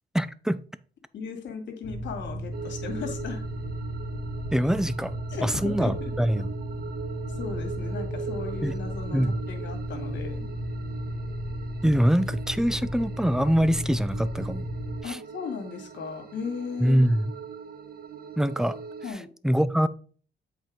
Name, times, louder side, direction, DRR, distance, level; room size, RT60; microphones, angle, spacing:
voice 1, 0.1-0.6 4.5-5.1 5.4-6.5 8.6-8.8 9.1-9.4 11.8-14.7 15.0-15.2 16.8-17.3 18.4-18.8 19.4-19.9, equal, 5° right, 0.4 m, -24 dB
voice 2, 1.1-3.4 5.3-6.1 7.3-9.2 9.5-10.4 15.0-17.0 19.0-19.3, left 5 dB, 65° left, 2.2 m, -36 dB
sound 1, 1.8-15.0, equal, 30° left, 1.8 m, -34 dB
sound 2, 2.5-19.1, right 6 dB, 50° right, 1.0 m, -41 dB
8.0 x 4.5 x 3.7 m
cardioid pair, 90°, 20 cm